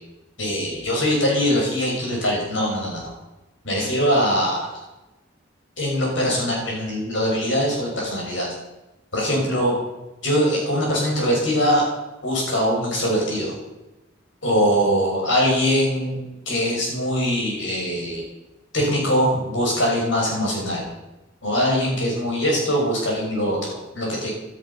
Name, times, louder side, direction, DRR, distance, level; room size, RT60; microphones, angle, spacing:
voice 1, 0.4-3.1 3.6-4.8 5.8-8.5 9.1-9.7 10.2-11.8 12.2-13.6 14.4-18.2 18.7-20.8 21.4-24.3, equal, 70° left, -2 dB, 6.6 m, -22 dB
17.0 x 13.0 x 5.8 m, 0.99 s
head